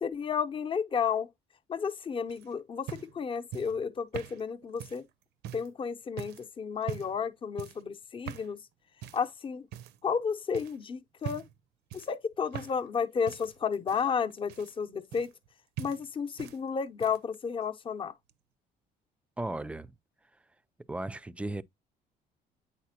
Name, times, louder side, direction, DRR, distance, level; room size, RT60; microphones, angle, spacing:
voice 1, 0.0-1.3 1.7-5.1 5.5-8.6 9.1-9.7 10.0-11.4 11.9-15.3 15.8-18.1, left 6 dB, 30° left, 0.7 m, -32 dB
sound 1, 2.3-5.7 6.2-6.5 6.8-7.2 7.6-7.9 8.3-8.6 9.0-9.3 9.7-10.2 10.5-10.8 11.2-11.6 11.9-13.0 13.3-15.5 15.8-16.6 16.9-17.4 18.3-18.4, right 10 dB, 80° right, 0.6 m, -42 dB
voice 2, 19.4-19.9 20.9-21.6, right 2 dB, 5° right, 0.3 m, -35 dB
8.5 x 4.1 x 2.8 m
cardioid pair, 110°, 17 cm